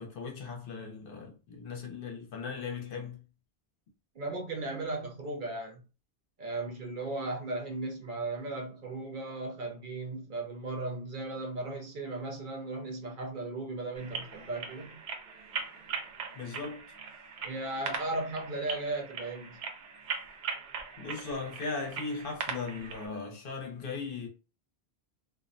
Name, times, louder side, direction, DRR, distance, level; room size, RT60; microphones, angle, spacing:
voice 1, 0.0-3.2 16.2-16.8 21.0-24.3, left 4 dB, 65° left, 0.8 m, -38 dB
voice 2, 4.2-5.8 6.4-15.0 17.4-19.6, right 2 dB, 60° right, 0.7 m, -36 dB
sound 1, 14.0-23.1, right 5 dB, 85° right, 0.8 m, -40 dB
2.5 x 2.1 x 2.5 m
omnidirectional pair, 1.1 m